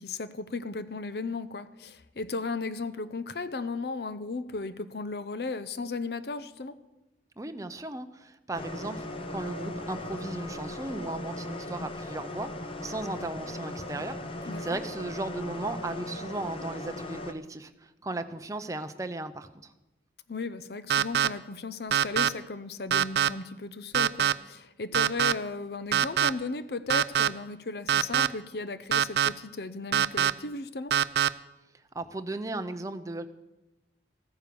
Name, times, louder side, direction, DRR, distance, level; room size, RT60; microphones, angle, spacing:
voice 1, 0.0-6.8 14.5-14.6 20.3-30.9, left 3 dB, 60° left, 13 dB, 0.7 m, -35 dB
voice 2, 7.4-19.7 31.9-33.3, right 2 dB, 20° right, 8 dB, 0.7 m, -36 dB
sound 1, 8.5-17.3, left 1 dB, 30° left, 0.8 m, -38 dB
sound 2, 20.9-21.3 21.9-22.3 22.9-23.3 23.9-24.3 24.9-25.3 25.9-26.3 26.9-27.3 27.9-28.3 28.9-29.3 29.9-30.3 30.9-31.3, right 9 dB, 65° right, 0.4 m, -23 dB
14.5 x 9.7 x 6.9 m, 1.0 s
head